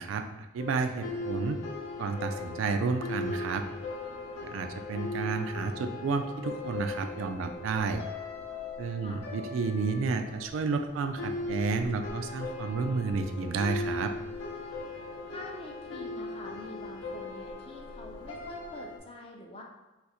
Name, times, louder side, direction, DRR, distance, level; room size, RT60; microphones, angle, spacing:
voice 1, 0.0-1.6 2.0-3.6 4.3-8.0 8.8-14.1, right 4 dB, 80° right, 7 dB, 0.3 m, -31 dB
sound 1, 0.6-19.0, left 2 dB, 75° left, 0.6 m, -39 dB
voice 2, 15.3-19.6, left 2 dB, 30° left, 0 dB, 0.4 m, -46 dB
2.5 x 2.5 x 4.1 m, 1.1 s
head